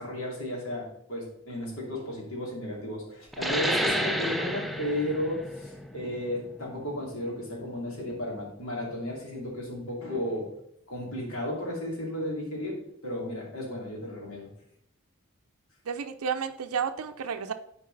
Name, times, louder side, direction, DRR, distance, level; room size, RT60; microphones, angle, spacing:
voice 1, 0.0-10.5 10.9-14.5, left 1 dB, 70° left, -2 dB, 2.7 m, -34 dB
sound 1, 3.3-8.5, equal, ahead, 0.4 m, -31 dB
voice 2, 15.8-17.5, right 6 dB, 80° right, 8 dB, 0.5 m, -31 dB
9.4 x 4.6 x 3.9 m, 0.72 s
head